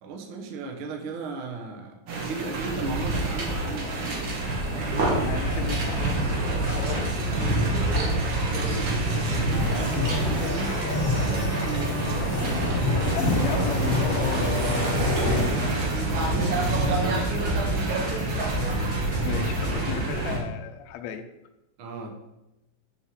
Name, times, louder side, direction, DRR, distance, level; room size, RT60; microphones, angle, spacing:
voice 1, 0.0-4.8 8.9-14.0 15.2-18.1 21.8-22.1, right 4 dB, 75° right, 3 dB, 1.2 m, -37 dB
sound 1, 2.1-20.4, right 2 dB, 50° right, 1.6 m, -26 dB
voice 2, 5.3-7.5 9.1-9.3 12.9-14.6 15.3-15.5 19.2-21.2, left 7 dB, 90° left, 6 dB, 1.5 m, -36 dB
sound 2, 9.5-15.5, left 2 dB, 65° left, 0.5 m, -29 dB
sound 3, 13.1-19.9, right 1 dB, 20° right, 2.4 m, -36 dB
5.6 x 5.6 x 6.3 m, 0.92 s
omnidirectional pair, 3.9 m